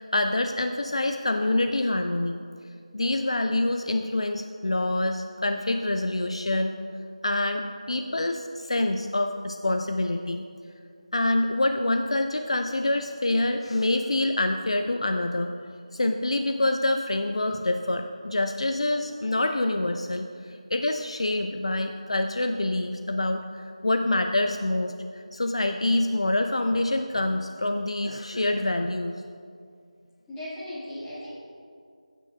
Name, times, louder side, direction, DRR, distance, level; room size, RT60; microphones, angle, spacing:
voice 1, 0.0-2.4 2.9-6.8 7.2-10.4 11.1-15.5 15.9-29.1, left 2 dB, 55° left, 6 dB, 0.5 m, -26 dB
voice 2, 30.3-31.4, left 1 dB, 5° left, -12 dB, 1.7 m, -37 dB
16.0 x 9.0 x 2.3 m, 2.3 s
figure-of-eight pair, 165°, 4 cm